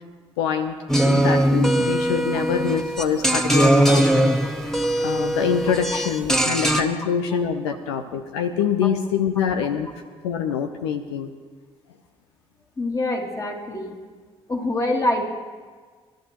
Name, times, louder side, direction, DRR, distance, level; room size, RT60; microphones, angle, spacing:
voice 1, 0.4-0.8 1.0-4.3 4.6-9.9 10.2-11.3, left 7 dB, 85° left, 8 dB, 0.6 m, -25 dB
sound 1, 0.9-6.8, right 1 dB, 5° left, 1.6 m, -20 dB
voice 2, 12.8-14.0 14.5-15.3, left 1 dB, 25° left, 0 dB, 2.7 m, -25 dB
30.0 x 11.5 x 3.0 m, 1.5 s
hypercardioid pair, 50°, 13 cm